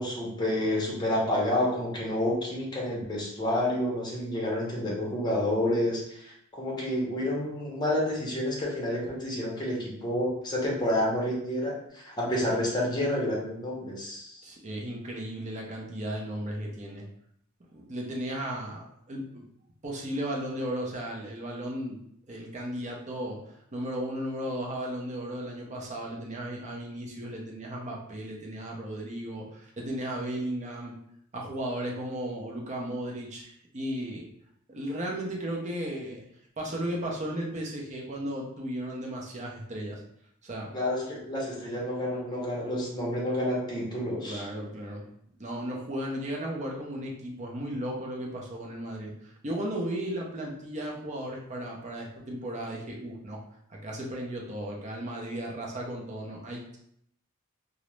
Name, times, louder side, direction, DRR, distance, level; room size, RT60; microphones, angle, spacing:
voice 1, 0.0-14.4 40.7-44.4, left 1 dB, 20° left, -4 dB, 0.7 m, -29 dB
voice 2, 14.4-17.0 17.7-19.4 19.8-22.0 22.3-23.4 23.7-30.9 31.3-34.2 34.7-36.2 36.6-40.0 40.4-40.7 44.3-45.1 45.4-53.4 53.7-56.8, right 1 dB, 35° right, -1 dB, 0.6 m, -35 dB
2.4 x 2.0 x 3.0 m, 0.71 s
head